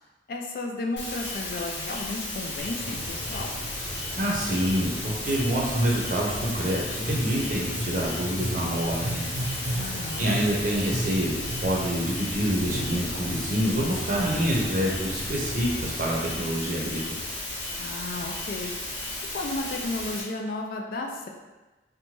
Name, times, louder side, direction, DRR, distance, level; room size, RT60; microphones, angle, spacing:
voice 1, 0.3-3.5 9.8-10.3 17.8-21.3, left 2 dB, 55° left, 2 dB, 0.3 m, -34 dB
sound 1, 1.0-20.2, left 2 dB, 85° left, 0.8 m, -34 dB
sound 2, 2.6-16.3, equal, 20° left, 0.8 m, -39 dB
voice 2, 4.2-9.3 9.6-9.7 10.2-17.2, equal, 50° right, -3 dB, 0.6 m, -27 dB
sound 3, 5.2-15.5, right 1 dB, 90° right, 0.7 m, -36 dB
2.8 x 2.2 x 3.0 m, 1.1 s
head